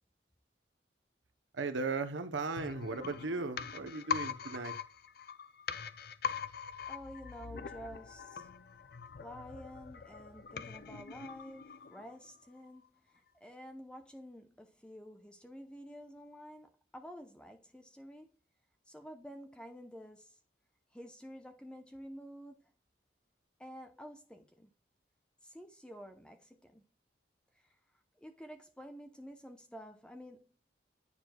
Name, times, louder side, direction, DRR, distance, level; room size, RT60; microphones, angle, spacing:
voice 1, 1.5-4.8, right 3 dB, 85° right, 0.8 m, -37 dB
sound 1, 2.6-12.3 12.6-12.7, left 7 dB, 55° left, 0.4 m, -42 dB
voice 2, 6.8-8.5 9.2-12.9 13.1-18.3 18.9-20.3 20.9-22.6 23.6-24.7 25.4-26.8 28.2-30.5, equal, 5° left, 0.7 m, -50 dB
9.8 x 4.5 x 2.2 m
head